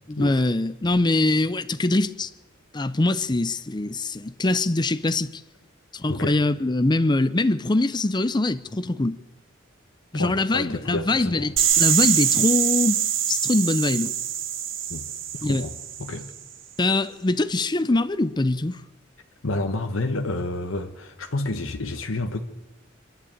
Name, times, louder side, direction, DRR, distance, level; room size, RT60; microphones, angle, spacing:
voice 1, 0.1-2.3 2.7-5.4 5.9-9.2 10.1-13.0 13.3-14.1 15.4-15.6 16.8-18.8, left 2 dB, 20° left, 0.6 m, -23 dB
voice 2, 10.1-11.5 14.9-15.1 15.3-16.3 19.4-22.4, left 2 dB, 80° left, 1.2 m, -30 dB
sound 1, 11.6-16.3, right 9 dB, 70° right, 1.8 m, -24 dB
26.0 x 11.5 x 8.7 m
head